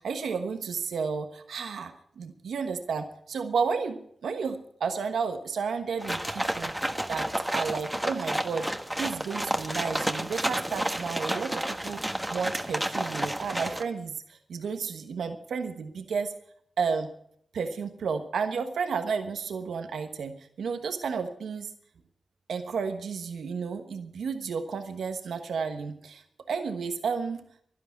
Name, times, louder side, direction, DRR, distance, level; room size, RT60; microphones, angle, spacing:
voice 1, 0.0-8.7 9.0-12.0 12.3-16.3 16.8-17.1 17.5-21.7 22.5-26.2 26.5-27.4, right 5 dB, 85° right, 6 dB, 1.2 m, -32 dB
sound 1, 6.0-13.8, right 1 dB, 10° right, 1.5 m, -31 dB
11.5 x 11.0 x 8.5 m, 0.65 s
cardioid pair, 40°, 0 cm